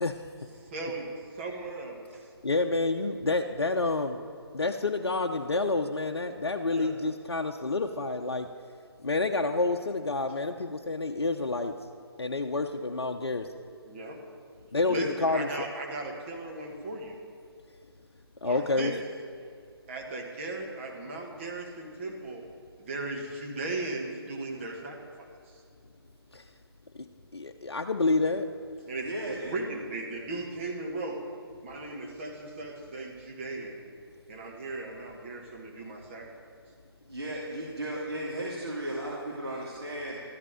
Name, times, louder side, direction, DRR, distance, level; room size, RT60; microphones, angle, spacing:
voice 1, 0.0-0.5 2.4-4.2 4.5-8.5 9.0-11.7 12.2-13.5 14.7-15.5 18.4-18.9 26.3-26.4 26.9-27.1 27.3-28.5, left 3 dB, 70° left, 4 dB, 0.7 m, -28 dB
voice 2, 0.6-2.3 6.7-6.9 13.9-14.2 14.9-17.2 18.4-19.0 19.9-22.4 22.8-25.6 28.9-31.2 31.6-33.8 34.3-36.6, right 2 dB, 30° right, 0 dB, 1.8 m, -37 dB
voice 3, 29.0-29.5 37.1-40.2, right 1 dB, 70° right, -6 dB, 2.8 m, -35 dB
13.5 x 12.0 x 5.1 m, 2.2 s
figure-of-eight pair, 150°, 14 cm